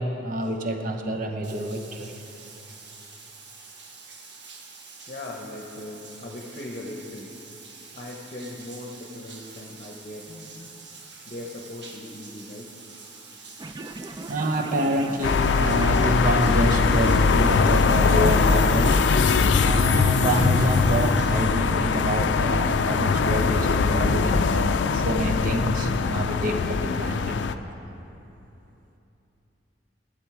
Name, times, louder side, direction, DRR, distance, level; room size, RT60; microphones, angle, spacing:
voice 1, 0.0-2.1 14.3-19.1 19.6-27.4, right 1 dB, 50° right, 4 dB, 0.8 m, -27 dB
Bathtub (filling or washing), 1.4-21.4, right 4 dB, 75° right, 1.2 m, -46 dB
voice 2, 5.1-7.3 7.9-10.7 11.3-12.7, left 1 dB, 45° left, -1 dB, 0.8 m, -39 dB
sound 1, 13.6-20.7, right 2 dB, 25° right, 0.3 m, -38 dB
sound 2, 15.2-27.6, left 4 dB, 75° left, 0.4 m, -21 dB
12.0 x 7.6 x 4.8 m, 2.9 s
head